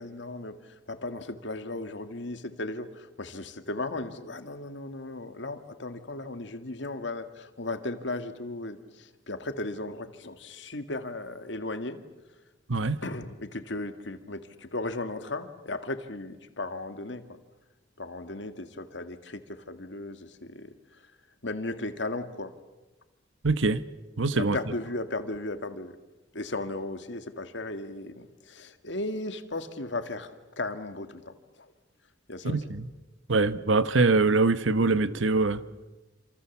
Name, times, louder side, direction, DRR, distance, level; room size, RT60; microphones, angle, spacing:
voice 1, 0.0-12.0 13.0-17.2 18.0-20.7 21.4-22.5 24.3-25.9 26.3-31.7 32.3-32.6, left 2 dB, 65° left, 2.0 m, -36 dB
voice 2, 23.4-23.8 24.2-24.6 32.4-32.9 33.3-35.6, right 3 dB, 80° right, 1.1 m, -23 dB
28.0 x 27.0 x 7.3 m
head